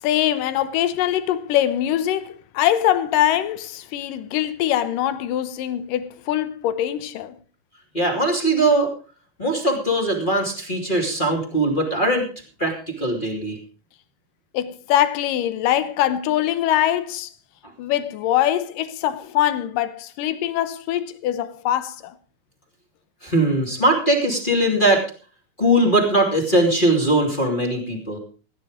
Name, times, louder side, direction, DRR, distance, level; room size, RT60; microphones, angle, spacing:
voice 1, 0.0-7.4 14.5-17.3 17.8-22.2, left 12 dB, 80° left, 2.6 m, -23 dB
voice 2, 7.9-8.9 9.4-12.2 12.6-13.6 23.2-25.0 25.6-28.2, right 1 dB, 15° left, 2.6 m, -20 dB
16.5 x 10.0 x 5.1 m
omnidirectional pair, 3.8 m